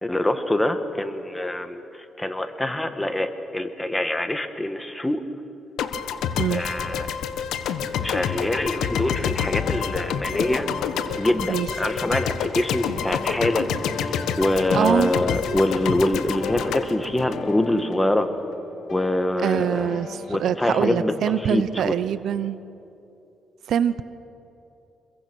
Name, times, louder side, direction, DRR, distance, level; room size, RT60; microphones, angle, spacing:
voice 1, 0.0-5.2 6.5-7.1 8.0-10.7 11.2-18.3 18.9-19.9 20.3-21.1 21.4-21.9, left 1 dB, 10° left, 8 dB, 1.6 m, -25 dB
sound 1, 5.8-18.0, left 8 dB, 80° left, 1.3 m, -28 dB
sound 2, 7.8-21.5, left 5 dB, 55° left, 1.9 m, -40 dB
voice 2, 14.7-15.1 19.4-22.6 23.7-24.0, right 9 dB, 70° right, 15 dB, 0.7 m, -24 dB
26.5 x 22.0 x 6.2 m, 2.8 s
cardioid pair, 90°, 0 cm